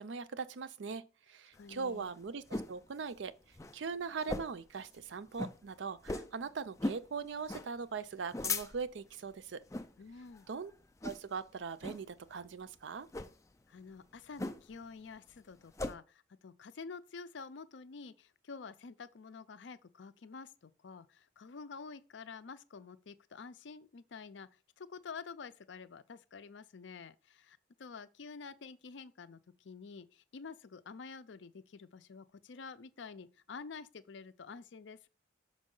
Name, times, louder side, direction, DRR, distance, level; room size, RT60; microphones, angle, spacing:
voice 1, 0.0-3.3 3.7-9.6 10.5-10.7 11.0-13.1, right 5 dB, 70° right, 0.5 m, -41 dB
voice 2, 1.5-2.1 10.0-10.5 13.7-35.1, left 5 dB, 70° left, 0.5 m, -49 dB
sound 1, 1.6-2.8 3.2-3.3 3.5-3.8 4.2-4.7 5.0-5.1 5.3-5.6 6.0-6.4 6.8-7.1 7.5-7.7 8.1-9.0 9.6-9.9 10.3-10.6 11.0-11.4 11.8-12.0 13.0-13.3 14.4-14.8 15.2-15.9, left 2 dB, 15° left, 0.4 m, -38 dB
6.1 x 5.2 x 3.8 m
head